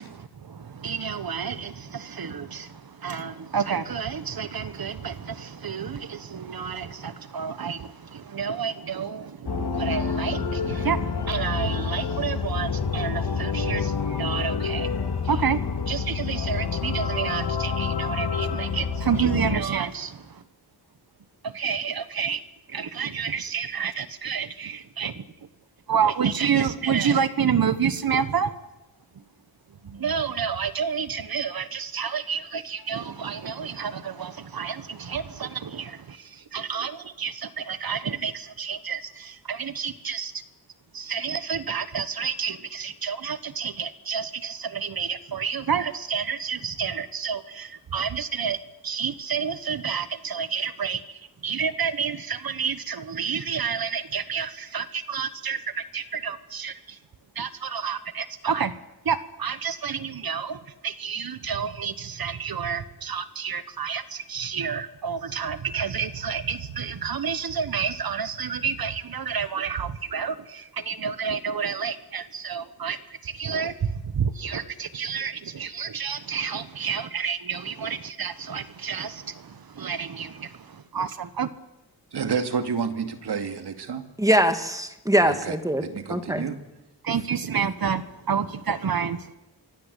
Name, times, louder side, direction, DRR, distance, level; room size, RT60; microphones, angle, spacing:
voice 1, 0.0-14.9 15.2-20.4 21.4-22.4 22.7-25.2 25.9-28.5 29.8-40.3 40.9-48.6 48.8-57.0 57.3-58.7 59.0-81.5 87.0-89.3, right 7 dB, 65° right, 13 dB, 1.4 m, -29 dB
sound 1, 9.5-19.6, left 5 dB, 80° left, 2.8 m, -28 dB
voice 2, 82.1-84.0 85.2-86.6, right 6 dB, 85° right, 8 dB, 2.5 m, -30 dB
voice 3, 84.2-85.8 86.1-86.4, right 1 dB, 10° right, 8 dB, 2.3 m, -22 dB
26.0 x 24.5 x 8.4 m, 0.95 s
wide cardioid pair, 130°, 39 cm